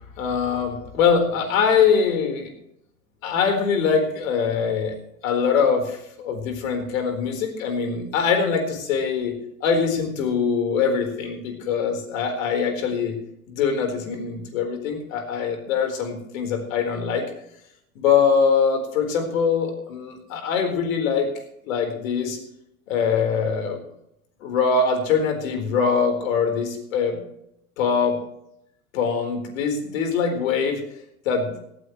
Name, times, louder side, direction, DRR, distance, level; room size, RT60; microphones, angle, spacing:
voice 1, 0.2-2.5 3.2-4.9 5.2-9.3 9.6-13.2 13.5-17.2 18.0-21.3 21.7-22.4 22.9-23.8 24.4-27.2 27.8-28.2 28.9-30.8 31.2-31.5, left 6 dB, 60° left, 5 dB, 4.4 m, -23 dB
17.5 x 15.5 x 3.2 m, 0.77 s
hypercardioid pair, 100°, 45 cm